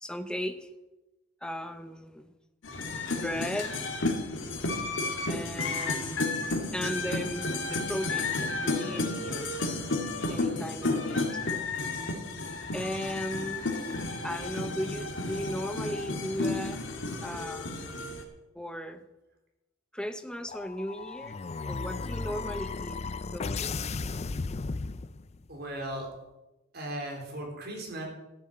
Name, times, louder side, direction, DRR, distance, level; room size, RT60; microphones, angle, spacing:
voice 1, 0.0-0.7 1.4-2.3 3.1-3.9 5.3-6.2 6.7-9.6 10.3-11.4 12.7-13.7 14.2-16.8 17.2-17.8 18.5-19.0 19.9-23.0 23.3-23.8, equal, 5° left, 9 dB, 0.8 m, -36 dB
sound 1, 2.6-18.2, left 2 dB, 75° left, 2.0 m, -32 dB
sound 2, 20.5-25.5, left 4 dB, 35° left, 0.4 m, -35 dB
voice 2, 25.5-26.1 26.7-28.0, right 1 dB, 55° right, 0 dB, 3.9 m, -37 dB
13.5 x 7.2 x 7.8 m, 1.0 s
head